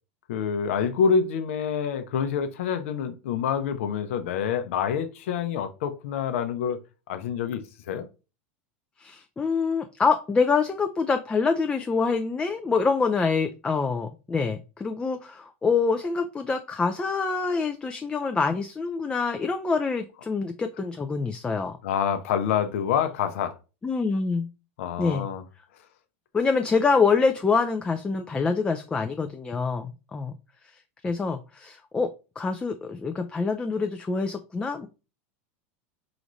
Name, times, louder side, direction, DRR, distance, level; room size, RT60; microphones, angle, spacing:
voice 1, 0.3-6.8 7.1-7.6 7.9-8.0 21.8-23.5 24.8-25.4, left 7 dB, 75° left, 0.6 m, -27 dB
voice 2, 9.0-21.8 23.8-24.5 25.0-25.3 26.3-30.3 31.0-32.1 32.4-34.9, left 4 dB, 15° left, 0.4 m, -25 dB
4.9 x 2.5 x 3.1 m
supercardioid pair, 115°, 7 cm